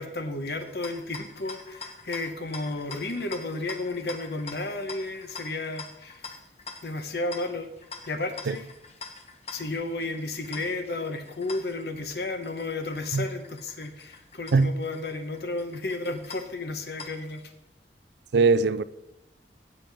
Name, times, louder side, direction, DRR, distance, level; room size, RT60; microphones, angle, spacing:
voice 1, 0.0-6.3 6.8-7.7 8.1-8.7 9.5-17.5, left 2 dB, 60° left, 0.9 m, -33 dB
sound 1, 0.6-17.5, left 4 dB, 35° left, 1.0 m, -45 dB
voice 2, 18.3-18.8, right 4 dB, 75° right, 0.4 m, -20 dB
16.5 x 7.6 x 3.4 m
head